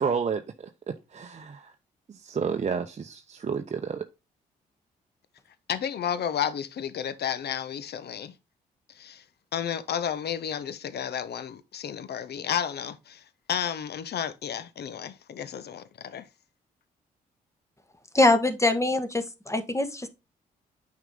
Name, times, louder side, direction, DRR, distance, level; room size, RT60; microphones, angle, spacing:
voice 1, 0.0-1.7 2.1-4.0, right 6 dB, 35° right, 0.8 m, -31 dB
voice 2, 5.7-8.3 9.0-9.2 9.5-13.2 13.5-16.3, left 9 dB, 55° left, 0.9 m, -32 dB
voice 3, 18.1-20.1, left 2 dB, 15° left, 1.6 m, -23 dB
9.1 x 4.9 x 3.7 m
hypercardioid pair, 40°, 20 cm